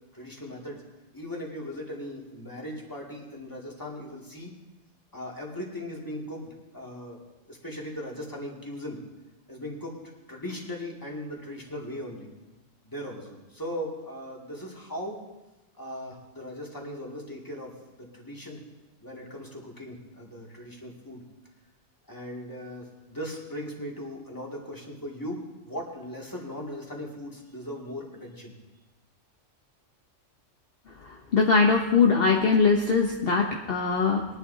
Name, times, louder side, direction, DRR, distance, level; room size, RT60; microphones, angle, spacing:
voice 1, 0.1-0.8 1.1-4.5 5.1-7.2 7.5-9.0 9.5-10.0 10.3-12.3 12.8-15.2 15.8-18.6 19.0-21.3 22.1-28.5, equal, 15° left, -2 dB, 2.3 m, -38 dB
voice 2, 31.3-34.3, left 5 dB, 50° left, 1 dB, 1.1 m, -21 dB
22.0 x 11.0 x 2.8 m, 1.1 s
omnidirectional pair, 1.3 m